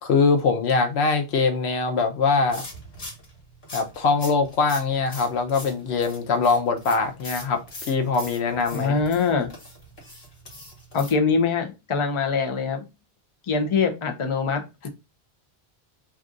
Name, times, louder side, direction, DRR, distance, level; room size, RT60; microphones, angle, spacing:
voice 1, 0.0-2.6 3.7-9.0, left 4 dB, 90° left, 0.9 m, -22 dB
sound 1, 2.5-11.1, left 1 dB, 75° left, 1.5 m, -42 dB
voice 2, 8.7-9.5 10.9-12.8 13.5-14.9, left 5 dB, 40° left, 0.5 m, -23 dB
2.6 x 2.4 x 3.7 m
omnidirectional pair, 1.1 m